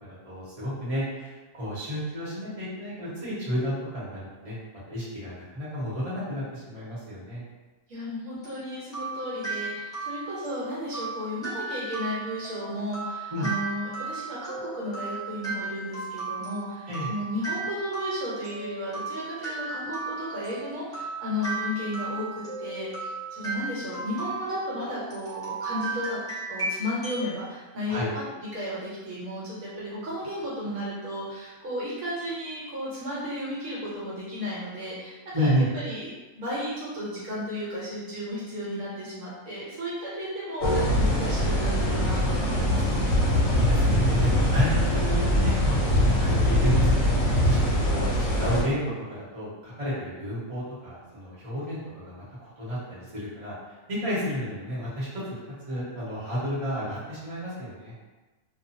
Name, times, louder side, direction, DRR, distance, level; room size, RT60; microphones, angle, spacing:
voice 1, 0.1-4.6 4.9-7.4 13.3-13.5 16.9-17.1 27.9-28.1 35.3-35.7 43.4-47.1 47.4-53.5 53.9-55.4 55.7-57.9, equal, 30° right, -9 dB, 0.9 m, -31 dB
voice 2, 7.9-26.2 26.5-28.1 28.4-36.1 36.3-43.1, left 1 dB, 65° right, -7 dB, 1.2 m, -34 dB
sound 1, 8.4-27.3, right 3 dB, 5° left, 0.5 m, -35 dB
sound 2, 40.6-48.6, left 1 dB, 60° left, 0.8 m, -23 dB
2.4 x 2.3 x 2.6 m, 1.2 s
omnidirectional pair, 1.6 m